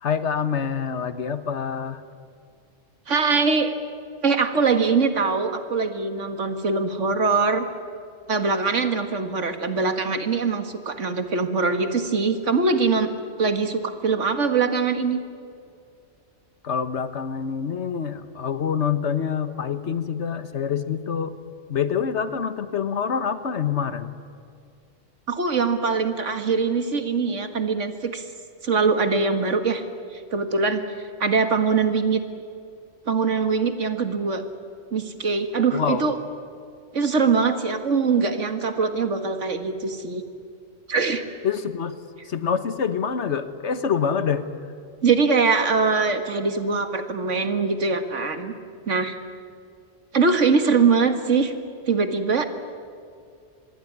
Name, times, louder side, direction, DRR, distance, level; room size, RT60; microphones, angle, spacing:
voice 1, 0.0-2.0 16.6-21.3 21.7-24.1 35.7-36.1 41.4-42.0 42.2-44.5, left 7 dB, 70° left, 11 dB, 1.6 m, -26 dB
voice 2, 3.1-3.7 4.2-7.7 8.3-13.1 13.4-15.2 25.3-28.2 28.6-29.8 30.1-30.8 31.2-32.2 33.1-34.4 34.9-36.2 36.9-40.2 40.9-41.2 45.0-48.5 48.9-49.1 50.1-51.5 51.9-52.5, right 4 dB, 85° right, 8 dB, 2.2 m, -22 dB
25.5 x 21.5 x 9.6 m, 2.4 s
omnidirectional pair, 1.2 m